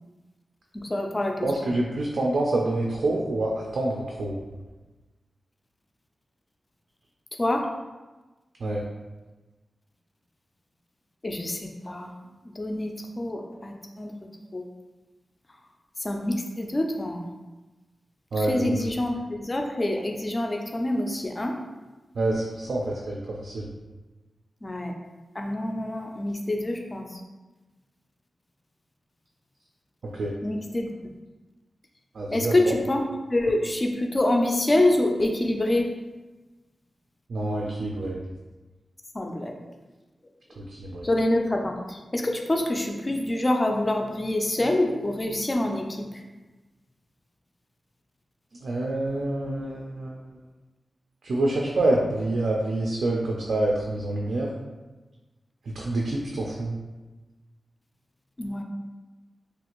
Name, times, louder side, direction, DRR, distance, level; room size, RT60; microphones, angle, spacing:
voice 1, 0.7-1.3 7.4-7.6 11.2-12.1 12.6-12.9 13.2-14.1 14.5-14.6 16.0-17.3 18.4-21.6 24.6-24.9 25.4-27.2 30.4-30.9 32.3-33.0 33.3-35.9 39.1-39.6 41.0-46.1 58.4-58.6, left 1 dB, 20° left, 2 dB, 0.3 m, -26 dB
voice 2, 1.4-4.4 8.6-8.8 18.3-18.8 22.1-23.7 30.1-30.3 32.1-32.8 37.3-38.2 40.6-41.1 48.6-50.2 51.2-54.5 55.7-56.8, right 2 dB, 65° right, -2 dB, 0.3 m, -27 dB
3.1 x 2.5 x 2.9 m, 1.2 s
wide cardioid pair, 180°, 0 cm